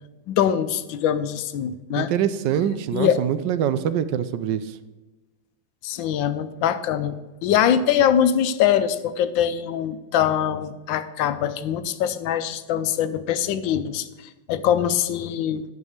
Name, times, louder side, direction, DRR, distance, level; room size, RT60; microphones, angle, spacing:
voice 1, 0.3-2.1 2.9-3.2 5.8-7.2 7.4-15.6, left 9 dB, 85° left, 12 dB, 1.4 m, -23 dB
voice 2, 2.0-4.8, right 9 dB, 75° right, 13 dB, 1.2 m, -24 dB
11.0 x 5.4 x 6.5 m, 1.1 s
omnidirectional pair, 2.0 m